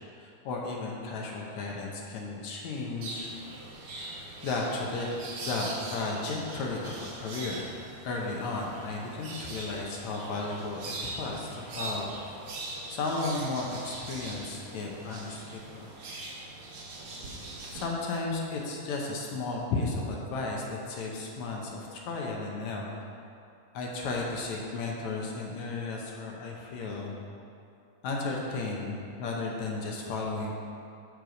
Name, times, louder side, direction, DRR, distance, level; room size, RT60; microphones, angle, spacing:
voice 1, 0.2-3.3 3.9-5.1 5.4-7.6 8.0-12.1 12.9-15.9 17.6-23.0 23.7-27.1 28.0-30.6, left 3 dB, 70° left, -2 dB, 2.2 m, -34 dB
sound 1, 3.0-17.8, right 2 dB, 55° right, 2.0 m, -42 dB
13.0 x 4.8 x 5.2 m, 2.5 s
omnidirectional pair, 3.7 m